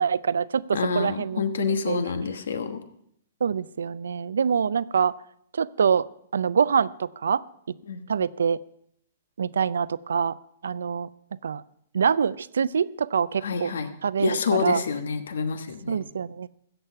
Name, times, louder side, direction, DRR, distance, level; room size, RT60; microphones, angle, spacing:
voice 1, 0.0-2.0 3.4-5.1 5.5-6.1 6.3-7.4 8.1-8.6 9.4-10.4 10.6-11.1 11.4-11.6 11.9-13.7 14.0-14.8 15.9-16.5, right 6 dB, 85° right, 19 dB, 0.4 m, -25 dB
voice 2, 0.7-2.8 7.9-8.0 13.4-13.9 14.2-16.0, left 5 dB, 80° left, 9 dB, 1.2 m, -27 dB
14.0 x 8.0 x 5.6 m, 0.70 s
hypercardioid pair, 135°, 0 cm